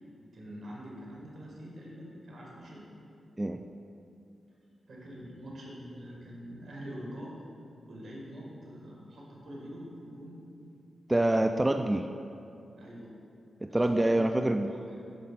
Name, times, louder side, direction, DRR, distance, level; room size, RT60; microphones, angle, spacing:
voice 1, 0.3-2.8 4.9-7.3 7.9-10.4 12.8-13.2 13.7-14.4 14.7-15.0, equal, 65° right, -4 dB, 1.8 m, -45 dB
voice 2, 11.1-12.1 13.6-14.7, right 1 dB, 20° right, 6 dB, 0.3 m, -26 dB
12.5 x 5.3 x 2.5 m, 2.6 s
supercardioid pair, 40°, 0 cm